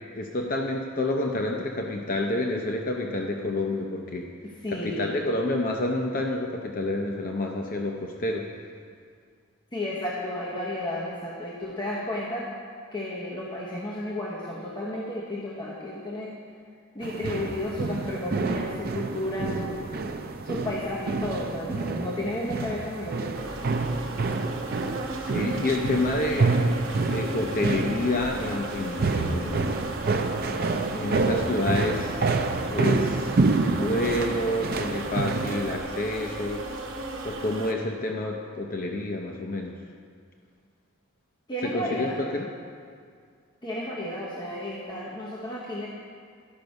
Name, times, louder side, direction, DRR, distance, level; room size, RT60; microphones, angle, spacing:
voice 1, 0.1-4.3 4.8-8.5 25.2-26.6 27.1-29.8 30.9-33.4 33.7-36.6 37.2-39.7 41.6-42.5, left 2 dB, 40° left, 1 dB, 0.6 m, -29 dB
voice 2, 4.4-5.2 9.7-12.5 12.9-16.4 16.9-19.7 20.4-23.4 41.5-42.2 43.6-45.9, left 1 dB, 20° left, -5 dB, 0.9 m, -32 dB
sound 1, 17.0-35.8, right 3 dB, 45° right, 0.5 m, -28 dB
sound 2, 23.3-37.7, right 2 dB, 60° right, 1.0 m, -36 dB
12.0 x 5.8 x 5.2 m, 2.2 s
head